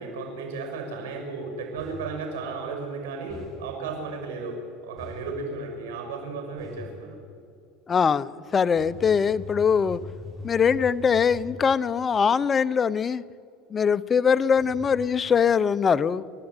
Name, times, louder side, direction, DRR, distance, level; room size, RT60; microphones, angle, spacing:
voice 1, 0.0-7.2, right 4 dB, 90° right, 3 dB, 5.8 m, -34 dB
sound 1, 1.8-2.2 3.3-3.7 5.0-5.4 6.6-7.0 8.8-11.7 14.6-14.9, left 2 dB, ahead, 7.0 m, -42 dB
voice 2, 7.9-10.0 10.4-13.2 13.7-16.2, left 6 dB, 25° left, 15 dB, 0.7 m, -22 dB
30.0 x 14.5 x 9.0 m, 2.5 s
supercardioid pair, 130°, 0 cm